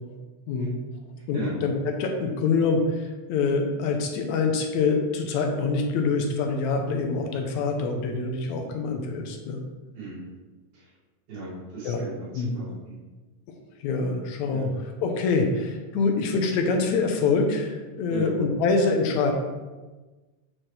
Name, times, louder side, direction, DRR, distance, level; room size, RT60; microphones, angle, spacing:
voice 1, 0.5-0.8 1.3-1.7 2.0-9.6 11.8-12.0 12.4-12.5 13.8-19.3, left 4 dB, 80° left, 3 dB, 2.0 m, -25 dB
voice 2, 9.9-10.2 10.7-10.9 11.3-13.0 14.5-14.7 18.1-18.4, right 3 dB, 75° right, -9 dB, 3.7 m, -37 dB
7.4 x 4.4 x 3.3 m, 1.2 s
omnidirectional pair, 3.4 m